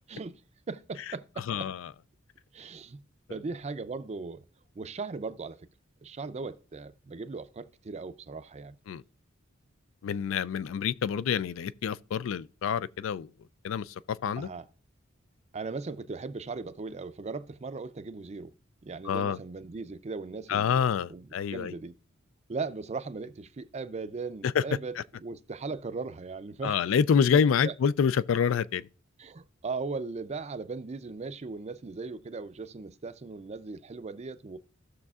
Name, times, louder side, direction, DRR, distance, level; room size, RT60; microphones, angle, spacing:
voice 1, 0.1-0.4 0.7-1.7 2.5-3.0 3.3-4.4 4.8-5.7 6.0-8.7 14.4-14.7 15.5-18.5 18.8-22.0 22.5-26.9 27.3-27.7 29.2-34.6, right 4 dB, 35° right, 0.4 m, -38 dB
voice 2, 1.5-1.8 8.9-9.0 10.0-13.3 13.6-14.5 19.0-19.4 20.5-21.7 24.6-24.7 26.6-28.8, left 7 dB, 70° left, 0.3 m, -27 dB
16.0 x 6.4 x 2.4 m
head